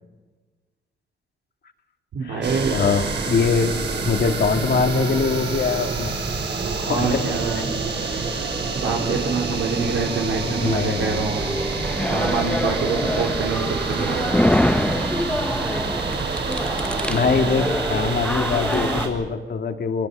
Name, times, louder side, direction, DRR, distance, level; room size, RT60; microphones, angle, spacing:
voice 1, 2.1-2.8 6.8-7.8 8.7-11.4 12.1-14.4, right 4 dB, 85° right, -1 dB, 3.1 m, -25 dB
sound 1, 2.4-19.1, right 4 dB, 65° right, 5.7 m, -27 dB
voice 2, 2.7-3.7 4.1-6.1 6.9-7.3 8.0-8.6 10.4-11.2 12.0-12.2 17.0-20.1, left 5 dB, 55° left, 5 dB, 2.0 m, -23 dB
sound 2, 10.1-19.1, left 1 dB, 5° left, 0.7 m, -26 dB
25.0 x 24.5 x 6.7 m, 1.4 s
cardioid pair, 115°, 20 cm